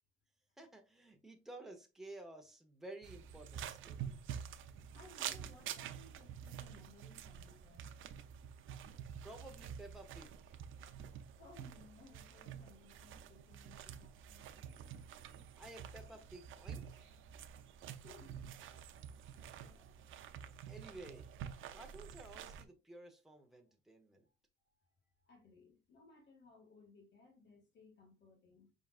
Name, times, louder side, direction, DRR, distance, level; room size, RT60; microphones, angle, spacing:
voice 1, 0.6-4.0 9.2-10.6 15.5-17.1 20.7-21.3 21.7-24.3, right 2 dB, ahead, 1.0 m, -53 dB
sound 1, 3.0-22.6, right 9 dB, 75° right, 0.6 m, -48 dB
voice 2, 4.2-7.9 11.4-14.5 17.8-18.5 19.3-20.0 24.2-24.3 24.8-28.7, left 3 dB, 60° left, 2.0 m, -62 dB
5.5 x 3.7 x 2.5 m
cardioid pair, 115°, 20 cm